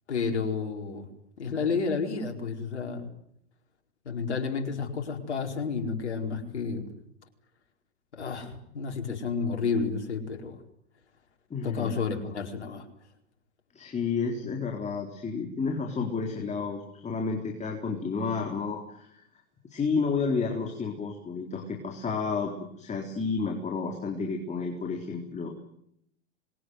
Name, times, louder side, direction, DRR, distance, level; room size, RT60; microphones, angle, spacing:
voice 1, 0.1-1.1 1.4-3.1 4.0-6.9 8.1-10.5 11.6-12.8, left 5 dB, 85° left, 3 dB, 4.7 m, -31 dB
voice 2, 11.5-12.0 13.7-19.2 19.7-25.5, left 4 dB, 20° left, 2 dB, 4.0 m, -31 dB
26.5 x 22.0 x 9.5 m, 0.75 s
hypercardioid pair, 105°, 33 cm